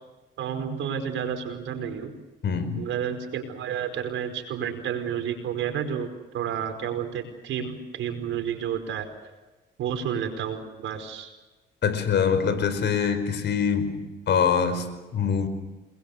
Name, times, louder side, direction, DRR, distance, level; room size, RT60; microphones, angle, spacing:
voice 1, 0.4-2.1 2.8-9.1 9.8-11.3, right 8 dB, 80° right, 7 dB, 5.0 m, -30 dB
voice 2, 2.4-2.9 11.8-15.5, left 6 dB, 65° left, 11 dB, 5.0 m, -24 dB
30.0 x 22.0 x 6.7 m, 1.2 s
cardioid pair, 90°, 20 cm